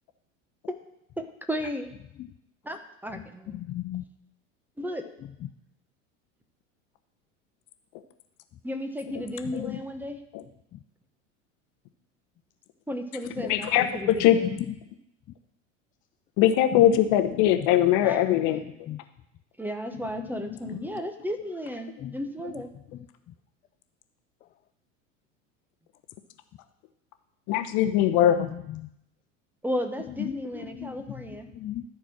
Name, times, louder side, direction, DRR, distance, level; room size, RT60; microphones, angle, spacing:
voice 1, 1.2-1.9 2.6-3.6 4.8-5.0 8.6-10.2 12.9-14.5 18.0-18.6 19.6-22.7 29.6-31.5, equal, 5° right, 6 dB, 1.1 m, -34 dB
voice 2, 3.1-4.0 5.4-5.5 9.1-9.2 9.4-9.8 10.7-10.8 13.3-13.7 14.3-14.7 16.7-16.9 17.5-18.6 18.9-19.0 20.1-20.8 22.0-22.1 27.8-27.9 28.2-28.9 30.2-30.3 30.7-31.8, left 13 dB, 25° left, 7 dB, 0.3 m, -36 dB
voice 3, 13.5-14.4 16.4-18.6 27.5-28.5, left 11 dB, 50° left, 8 dB, 1.0 m, -21 dB
13.5 x 4.6 x 6.1 m, 0.81 s
hypercardioid pair, 85°, 38 cm